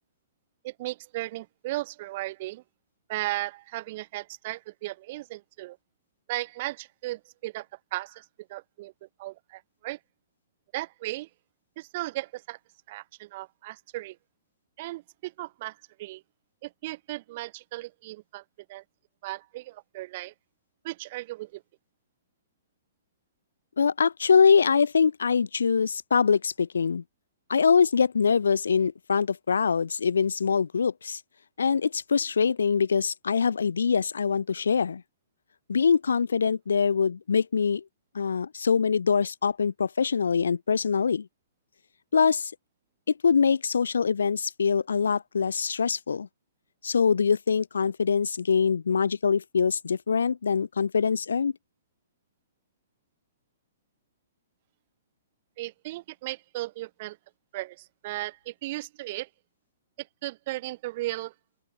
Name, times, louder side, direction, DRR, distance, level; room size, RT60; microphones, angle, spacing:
voice 1, 0.6-2.6 3.1-5.8 6.3-10.0 10.7-11.3 11.8-12.6 12.9-14.2 14.8-16.2 16.6-18.4 18.7-18.8 19.2-20.3 20.8-21.6 55.6-57.2 57.5-59.3 60.0-61.3, right 18 dB, 40° right, 1.9 m, -36 dB
voice 2, 23.8-27.0 27.5-31.2 31.6-35.0 35.7-37.8 38.1-41.3 42.1-42.5 43.2-46.3 46.8-51.5, left 6 dB, 65° left, 2.7 m, -24 dB
open air
figure-of-eight pair, 115°, 0 cm